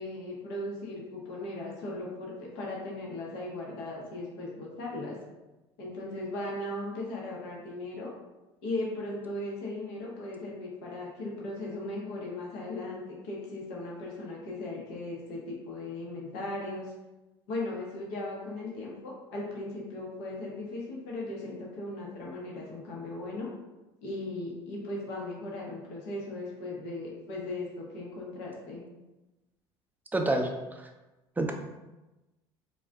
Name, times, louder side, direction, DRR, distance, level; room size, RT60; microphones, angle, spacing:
voice 1, 0.0-5.2 5.8-8.1 8.6-16.9 17.5-23.5 24.0-28.8, left 2 dB, 80° left, -3 dB, 0.9 m, -37 dB
voice 2, 30.1-30.9 31.4-31.5, right 2 dB, 15° right, 3 dB, 0.4 m, -28 dB
2.5 x 2.3 x 3.4 m, 1.1 s
hypercardioid pair, 75°, 13 cm